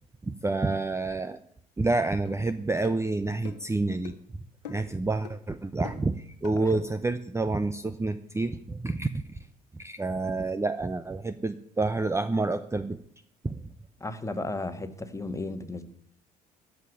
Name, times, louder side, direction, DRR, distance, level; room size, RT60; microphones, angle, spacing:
voice 1, 0.2-1.4 1.8-4.4 4.7-9.2 9.7-13.0 13.4-13.6, right 3 dB, 15° right, 12 dB, 0.7 m, -28 dB
sound 1, 2.3-2.4 2.8-3.0 3.5-3.7 4.0-4.2 4.7-5.0 5.3-5.4 5.9-6.1 6.4-6.6, left 6 dB, 85° left, 1.1 m, -43 dB
voice 2, 14.0-15.9, left 2 dB, 15° left, 8 dB, 1.6 m, -34 dB
14.0 x 5.7 x 9.2 m, 0.66 s
hypercardioid pair, 55°, 20 cm